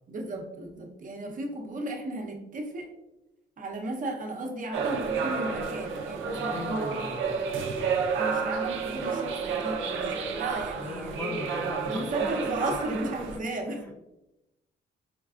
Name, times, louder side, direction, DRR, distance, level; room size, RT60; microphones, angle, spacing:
voice 1, 0.1-2.9 3.6-7.0 8.2-11.3 11.9-13.8, right 2 dB, 40° right, 2 dB, 0.7 m, -35 dB
sound 1, 4.7-13.4, right 5 dB, 75° right, 0.5 m, -31 dB
voice 2, 6.3-7.8 10.8-12.3 12.6-12.7 13.3-14.0, left 2 dB, 10° left, 1 dB, 0.3 m, -39 dB
5.1 x 2.3 x 2.4 m, 0.94 s
cardioid pair, 90°, 20 cm